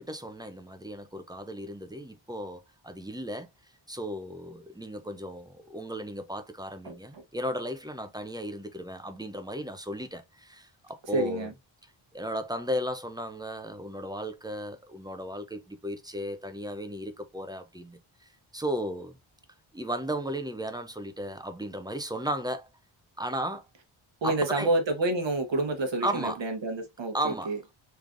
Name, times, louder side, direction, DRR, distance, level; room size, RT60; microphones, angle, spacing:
voice 1, 0.0-3.5 3.9-11.5 12.1-19.2 19.7-22.7 23.2-23.7 24.2-24.7 26.0-26.4 27.1-27.5, equal, 10° right, 0.4 m, -35 dB
voice 2, 6.8-7.2 11.1-11.5 24.2-27.6, right 2 dB, 60° right, 1.0 m, -29 dB
3.6 x 3.3 x 2.5 m
wide cardioid pair, 140°, 49 cm